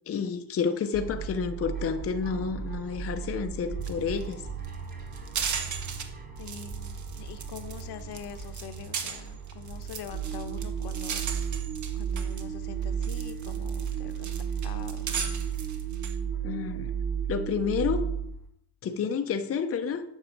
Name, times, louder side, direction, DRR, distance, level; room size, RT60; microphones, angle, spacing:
voice 1, 0.1-4.4 16.4-16.9 17.3-18.1 18.8-20.0, left 6 dB, 35° left, 6 dB, 0.7 m, -30 dB
sound 1, 0.9-18.5, right 5 dB, 20° right, 1.8 m, -41 dB
sound 2, 3.8-3.9 4.2-4.3 4.6-6.0 6.4-7.8 8.1-12.4 12.8-16.1, right 6 dB, 45° right, 1.4 m, -37 dB
voice 2, 6.4-11.2 11.9-14.3 14.6-15.2, left 8 dB, 70° left, 8 dB, 1.2 m, -44 dB
sound 3, 10.1-18.2, right 8 dB, 85° right, 2.2 m, -32 dB
9.2 x 6.6 x 6.5 m, 0.74 s
cardioid pair, 155°, 41 cm